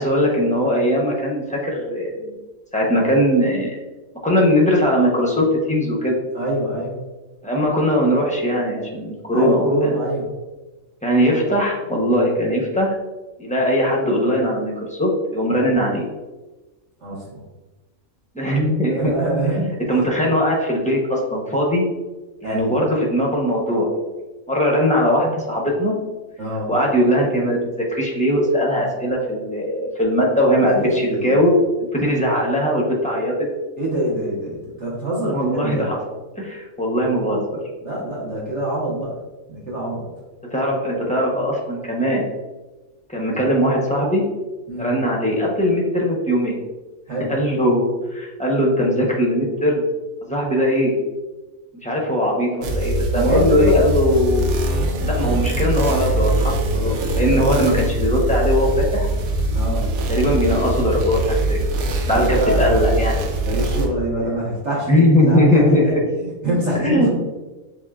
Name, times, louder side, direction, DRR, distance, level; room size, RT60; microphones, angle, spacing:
voice 1, 0.0-2.3 2.7-3.8 4.2-6.1 7.4-9.9 11.0-13.0 13.4-16.1 18.3-19.1 19.6-21.8 22.4-23.9 24.5-26.0 26.7-31.5 31.9-33.3 35.3-36.0 36.3-37.6 40.5-42.2 43.1-44.2 44.8-46.6 47.3-49.8 50.3-50.9 51.8-54.5 55.0-59.1 60.1-61.6 62.1-63.1 64.9-65.9 66.8-67.1, equal, 10° left, -3 dB, 0.5 m, -20 dB
voice 2, 6.3-7.0 9.3-10.3 17.0-17.4 18.9-19.6 19.9-20.1 22.4-22.7 26.4-26.7 30.6-31.4 33.8-35.9 37.8-39.2 39.5-40.1 44.7-44.9 47.1-47.3 53.1-53.8 57.3-57.6 59.5-59.9 62.1-62.7 63.5-64.9 65.3-65.9 66.2-67.1, right 1 dB, 60° right, -6 dB, 1.5 m, -24 dB
sound 1, 52.6-63.9, right 1 dB, 90° right, 1.1 m, -22 dB
7.3 x 2.5 x 2.4 m, 1.2 s
omnidirectional pair, 1.4 m